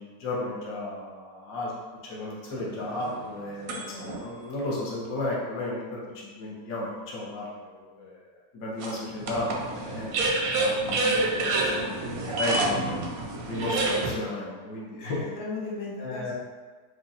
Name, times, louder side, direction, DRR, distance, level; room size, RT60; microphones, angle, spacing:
voice 1, 0.0-1.7 2.0-13.1 13.5-15.2 16.0-16.3, left 2 dB, 60° left, -5 dB, 1.2 m, -34 dB
sound 1, 2.5-4.2 4.9-5.0 8.8-14.1, right 2 dB, 70° right, 0.9 m, -28 dB
voice 2, 3.7-4.2 15.1-16.3, left 3 dB, 80° left, -5 dB, 1.4 m, -37 dB
4.9 x 2.4 x 2.7 m, 1.4 s
omnidirectional pair, 1.9 m